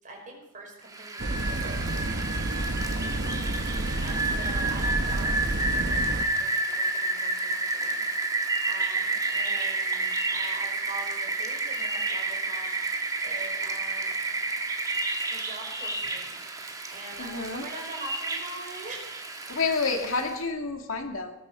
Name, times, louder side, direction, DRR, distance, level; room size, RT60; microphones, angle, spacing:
voice 1, 0.0-14.3 15.3-19.1, right 2 dB, 40° right, 0 dB, 5.1 m, -44 dB
Rain, 0.9-20.4, right 3 dB, 15° right, 1.6 m, -30 dB
sound 1, 1.2-6.3, right 2 dB, 55° right, 1.1 m, -30 dB
voice 2, 17.2-17.6 19.5-21.3, left 4 dB, 70° left, 4 dB, 2.2 m, -29 dB
19.0 x 11.0 x 6.9 m, 0.95 s
head